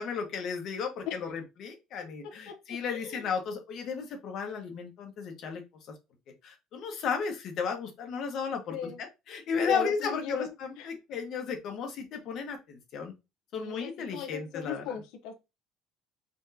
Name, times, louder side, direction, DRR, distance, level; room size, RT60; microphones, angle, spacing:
voice 1, 0.0-5.6 6.4-13.1 13.5-15.0, left 6 dB, 50° left, 4 dB, 1.4 m, -34 dB
voice 2, 2.4-3.2 8.7-9.0 9.6-10.9 13.5-15.3, left 6 dB, 75° left, 4 dB, 1.1 m, -37 dB
4.2 x 4.0 x 2.9 m, 0.24 s
cardioid pair, 145°, 0 cm